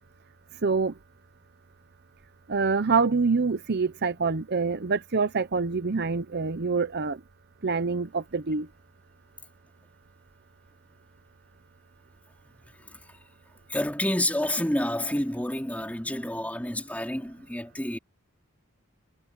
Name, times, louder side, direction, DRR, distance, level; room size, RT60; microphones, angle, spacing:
voice 1, 0.6-0.9 2.5-7.2 7.6-8.7, right 4 dB, 50° right, 0.8 m, -26 dB
voice 2, 12.8-13.2 13.7-18.0, left 1 dB, 5° left, 3.3 m, -29 dB
head